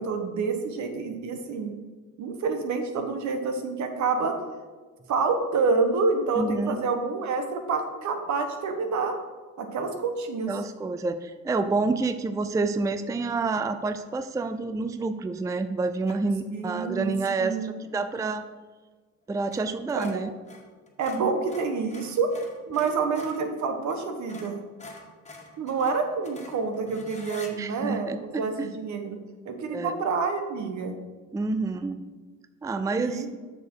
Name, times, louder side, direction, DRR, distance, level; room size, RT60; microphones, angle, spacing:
voice 1, 0.0-1.7 2.2-4.4 5.1-9.2 9.6-10.5 16.5-17.7 19.9-20.1 21.0-22.3 22.7-24.6 25.6-29.2 29.4-30.9 32.9-33.3, right 4 dB, 70° right, 6 dB, 1.2 m, -28 dB
voice 2, 6.4-6.8 10.5-18.4 19.3-20.3 27.6-28.7 29.7-30.0 31.3-32.0 32.6-33.3, right 3 dB, 10° right, 11 dB, 0.4 m, -28 dB
sound 1, 16.0-16.4 19.4-19.6 19.9-23.5 23.9-24.0 24.3-27.5, left 2 dB, 20° left, 1.6 m, -46 dB
6.6 x 6.5 x 4.6 m, 1.4 s
cardioid pair, 90°, 30 cm